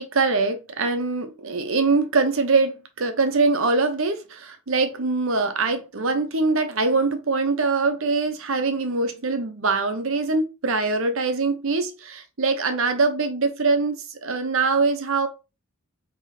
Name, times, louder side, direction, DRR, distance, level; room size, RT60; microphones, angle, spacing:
voice 1, 0.0-15.3, right 3 dB, 60° right, 0.7 m, -23 dB
5.6 x 3.0 x 2.7 m
head